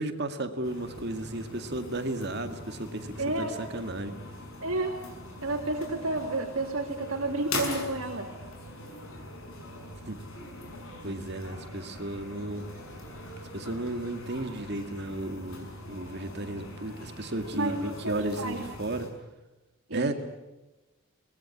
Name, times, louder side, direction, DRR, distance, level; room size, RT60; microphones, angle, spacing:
voice 1, 0.0-4.2 10.1-10.2 11.0-12.6 13.5-19.1 19.9-20.1, right 1 dB, 50° right, 7 dB, 2.2 m, -34 dB
sound 1, 0.6-19.1, left 2 dB, 75° left, 6.1 m, -42 dB
voice 2, 3.2-3.5 4.6-5.0 5.4-8.3 17.5-18.6 19.9-20.1, right 2 dB, 85° right, 0 dB, 3.0 m, -31 dB
24.0 x 20.0 x 9.7 m, 1.1 s
head